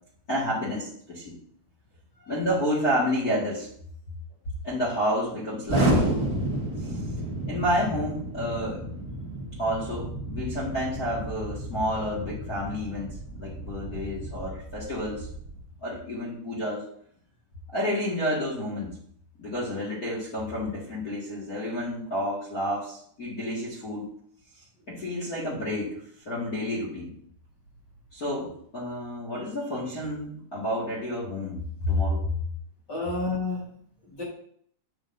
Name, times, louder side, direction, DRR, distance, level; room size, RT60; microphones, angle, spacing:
voice 1, 0.3-1.4 2.3-3.7 4.6-6.2 6.8-7.0 7.4-8.8 9.6-15.3 15.8-16.8 17.7-18.9 19.4-24.0 24.9-26.0 26.2-27.1 28.1-32.3, equal, 40° left, -6 dB, 1.5 m, -30 dB
Explosion, 5.7-15.6, right 1 dB, 45° right, 1.2 m, -31 dB
voice 2, 32.9-34.2, left 3 dB, 55° left, -5 dB, 1.1 m, -32 dB
7.7 x 6.5 x 2.6 m, 0.63 s
omnidirectional pair, 4.1 m